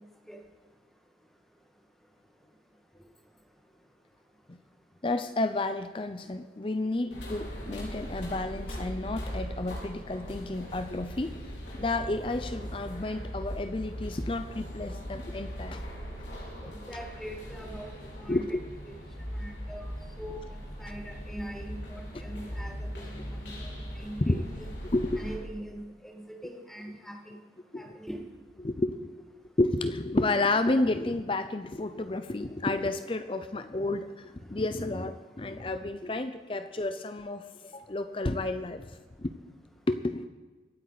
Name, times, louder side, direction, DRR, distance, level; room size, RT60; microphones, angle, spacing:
voice 1, 5.0-11.3 11.8-15.9 18.3-18.6 24.2-24.4 24.9-25.2 27.7-27.8 28.6-29.1 29.6-38.9 39.2-39.3 39.9-40.2, left 2 dB, 30° left, 10 dB, 0.5 m, -31 dB
sound 1, 7.1-25.4, equal, 75° left, 4.3 m, -39 dB
voice 2, 16.9-18.6 18.9-19.0 19.3-19.9 20.2-20.4 20.8-24.6 25.2-27.4 27.8-28.2, equal, ahead, 1 dB, 1.7 m, -42 dB
24.0 x 9.1 x 4.0 m, 1.3 s
head